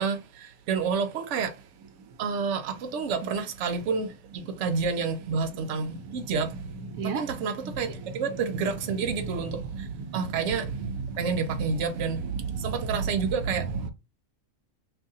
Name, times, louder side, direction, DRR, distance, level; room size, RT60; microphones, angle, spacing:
voice 1, 0.0-1.6 2.2-6.6 7.0-9.9 10.1-10.8 11.2-12.2 12.6-13.9, right 5 dB, 65° right, 0.9 m, -29 dB
voice 2, 6.9-8.0 8.3-8.4 9.0-9.2 9.5-11.6 12.0-13.9, right 5 dB, 85° right, 1.1 m, -34 dB
2.7 x 2.6 x 3.6 m
omnidirectional pair, 1.4 m